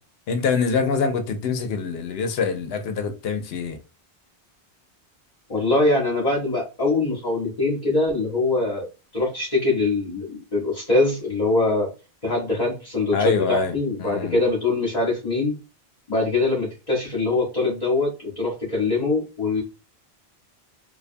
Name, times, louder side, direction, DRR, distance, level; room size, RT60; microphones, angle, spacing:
voice 1, 0.3-3.8 13.1-14.4, left 5 dB, 75° left, 0.8 m, -25 dB
voice 2, 5.5-8.9 9.1-11.9 12.2-15.5 16.1-19.6, left 2 dB, 40° left, 0.9 m, -23 dB
2.5 x 2.2 x 2.5 m
omnidirectional pair, 1.1 m